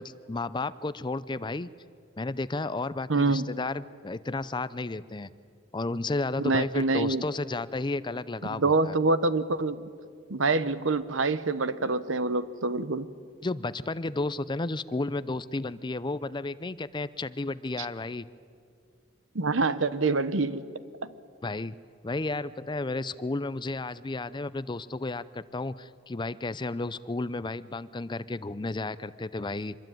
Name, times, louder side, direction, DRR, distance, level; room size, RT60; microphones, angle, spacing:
voice 1, 0.0-1.7 2.2-5.3 5.7-8.9 13.4-18.3 21.4-21.8 22.0-29.8, left 2 dB, 25° left, 16 dB, 0.6 m, -32 dB
voice 2, 3.1-3.5 6.4-7.2 8.6-9.8 10.3-13.1 19.3-20.6, right 3 dB, 90° right, 14 dB, 1.1 m, -26 dB
25.0 x 22.0 x 9.2 m, 2.3 s
head